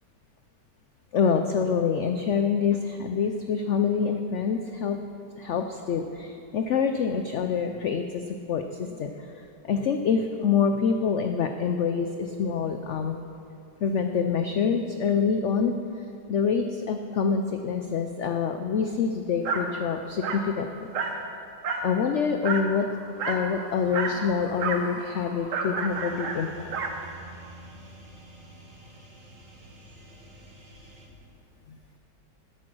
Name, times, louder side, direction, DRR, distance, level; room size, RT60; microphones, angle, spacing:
voice 1, 1.1-5.0 5.4-9.1 9.6-13.2 13.8-15.7 16.3-20.9 21.8-22.9 23.3-26.7, left 6 dB, 75° left, 6 dB, 0.6 m, -26 dB
Dog, 19.4-19.7 20.2-20.5 20.9-21.2 21.6-21.9 22.4-22.7 23.2-23.5 23.9-24.2 24.6-24.9 25.5-27.0, right 4 dB, 55° right, 1.2 m, -30 dB
sound 1, 22.6-29.0, left 1 dB, 15° left, 3.5 m, -51 dB
sound 2, 25.9-31.1, right 2 dB, 75° right, 2.5 m, -48 dB
12.5 x 9.1 x 6.1 m, 2.6 s
omnidirectional pair, 1.9 m